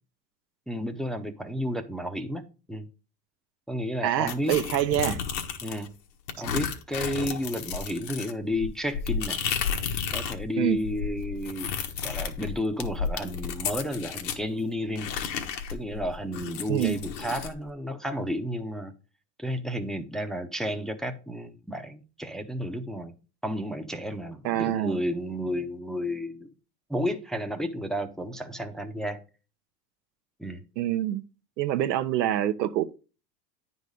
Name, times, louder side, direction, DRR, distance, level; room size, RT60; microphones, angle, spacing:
voice 1, 0.7-2.4 2.7-2.9 3.7-4.5 5.6-5.9 6.4-9.4 10.1-11.8 12.0-15.1 15.7-18.9 19.4-23.2 23.4-26.5 26.9-29.2 30.4-30.6, equal, ahead, 0.6 m, -32 dB
voice 2, 4.0-5.2 10.6-10.8 16.7-17.0 24.4-25.0 30.8-31.2 31.6-32.8, right 12 dB, 85° right, 0.8 m, -26 dB
sound 1, 4.3-5.9 6.3-10.4 10.7-14.4 15.0-17.5, left 7 dB, 85° left, 1.3 m, -32 dB
9.5 x 4.1 x 5.0 m
hypercardioid pair, 105°, 49 cm